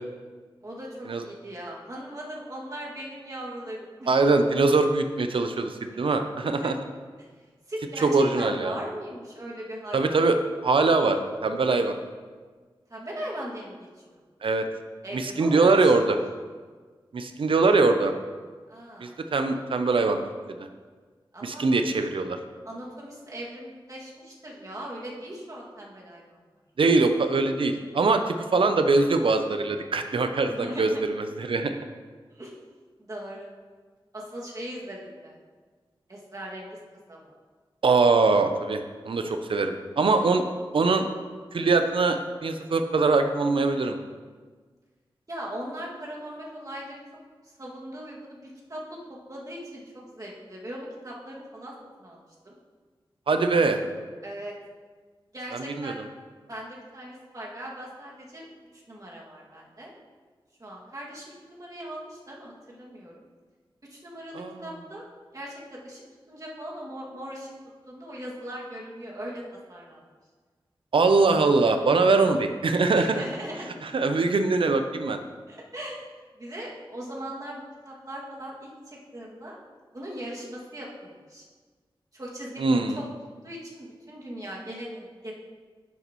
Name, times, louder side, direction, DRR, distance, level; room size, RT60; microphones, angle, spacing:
voice 1, 0.6-4.1 6.6-6.7 7.7-8.1 8.4-10.2 12.9-14.2 15.0-15.9 18.7-19.1 21.3-21.7 22.6-26.4 30.5-31.0 32.3-32.6 33.0-33.5 34.1-35.3 36.1-36.8 37.1-37.3 40.0-40.2 45.3-47.0 47.6-49.0 49.3-51.7 52.0-52.5 54.2-54.6 55.3-56.0 56.4-58.5 58.9-59.9 60.6-63.2 63.8-65.0 65.3-66.0 66.3-67.5 67.9-69.4 69.7-70.0 72.9-73.7 75.5-76.0 76.3-79.6 79.9-81.4 82.1-83.1 83.4-85.3, right 1 dB, 40° right, -4 dB, 2.2 m, -39 dB
voice 2, 4.1-6.7 8.0-8.8 9.9-10.4 10.6-11.9 14.4-14.6 15.1-16.2 17.1-18.1 19.0-20.2 20.6-20.7 21.4-22.4 26.8-31.8 37.8-40.4 40.7-41.1 41.5-44.0 53.3-53.8 55.5-55.9 64.3-64.5 70.9-73.2 73.8-75.2 82.6-83.0, right 3 dB, 75° right, 7 dB, 0.6 m, -22 dB
10.5 x 6.1 x 3.1 m, 1.5 s
cardioid pair, 50°, 9 cm